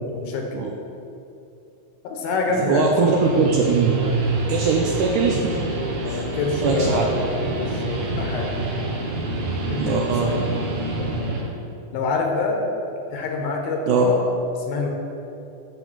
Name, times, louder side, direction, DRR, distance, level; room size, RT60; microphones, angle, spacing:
voice 1, 0.1-0.7 2.0-3.2 6.0-8.5 9.7-10.4 11.0-11.3 11.9-12.6 13.1-14.2 14.6-14.9, left 3 dB, 80° left, 1 dB, 2.8 m, -26 dB
voice 2, 2.7-3.9 4.5-5.6 6.1-6.2 6.6-7.1 9.8-10.4 13.9-14.1, right 5 dB, 85° right, 1 dB, 1.8 m, -21 dB
Guitar, 2.8-11.5, right 2 dB, 60° right, 2.2 m, -27 dB
8.5 x 6.4 x 6.0 m, 2.7 s
omnidirectional pair, 4.3 m